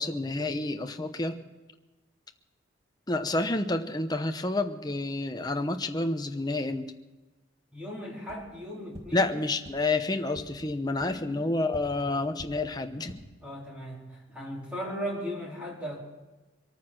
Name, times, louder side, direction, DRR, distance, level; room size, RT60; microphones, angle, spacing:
voice 1, 0.0-1.4 3.1-6.9 9.1-13.2, left 2 dB, 20° left, 7 dB, 0.8 m, -29 dB
voice 2, 7.7-9.3 11.1-11.4 12.0-12.1 13.4-16.0, equal, 5° right, -5 dB, 4.1 m, -37 dB
sound 1, 8.2-8.4 8.9-9.0 9.6-9.7 10.3-10.4 11.0-11.1 11.7-11.8 12.3-12.5 12.9-13.2, equal, 30° right, 1.7 m, -44 dB
24.0 x 9.3 x 6.3 m, 1.1 s
head